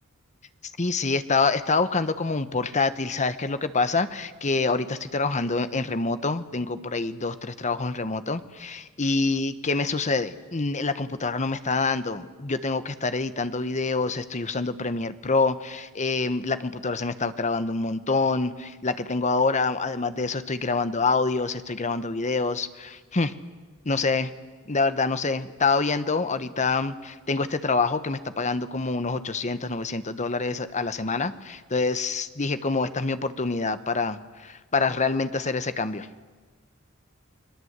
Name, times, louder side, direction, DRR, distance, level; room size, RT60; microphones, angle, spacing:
voice 1, 0.8-23.4 23.8-24.3 24.7-36.1, left 3 dB, 35° left, 12 dB, 1.1 m, -26 dB
30.0 x 21.0 x 8.1 m, 1.3 s
head